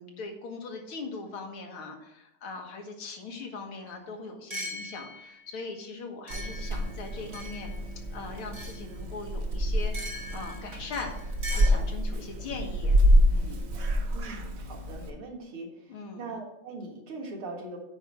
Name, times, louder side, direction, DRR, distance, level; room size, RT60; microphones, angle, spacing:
voice 1, 0.0-7.7 8.1-13.0 13.3-13.6 15.9-16.3, left 3 dB, 80° left, 2 dB, 2.3 m, -40 dB
sound 1, 3.9-4.0 4.5-5.4 6.3-7.8 8.5-8.8 9.9-11.7, equal, 15° right, 2.3 m, -40 dB
Purr / Meow, 6.3-15.1, equal, 60° right, 0.6 m, -27 dB
voice 2, 14.1-15.7 16.2-17.8, right 3 dB, 80° right, 0 dB, 2.6 m, -40 dB
8.9 x 4.7 x 6.4 m, 0.85 s
omnidirectional pair, 2.3 m